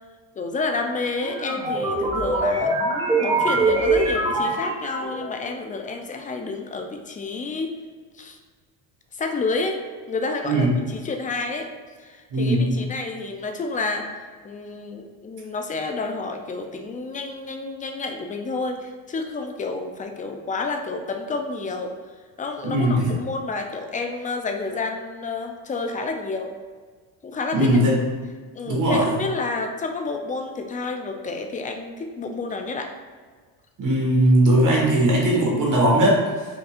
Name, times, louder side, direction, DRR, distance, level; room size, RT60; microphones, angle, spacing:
voice 1, 0.4-2.7 3.2-7.7 8.1-8.4 9.1-9.8 10.1-11.7 12.0-21.9 22.4-26.5 27.2-27.8 28.5-32.9, left 3 dB, 20° left, 4 dB, 0.4 m, -29 dB
sound 1, 1.2-5.4, right 2 dB, 10° right, 1.1 m, -23 dB
voice 2, 12.3-12.8 22.6-23.2 27.5-28.0 28.7-29.2 33.8-36.5, right 1 dB, 45° right, -3 dB, 1.5 m, -19 dB
5.2 x 2.6 x 2.4 m, 1.5 s
supercardioid pair, 90°, 44 cm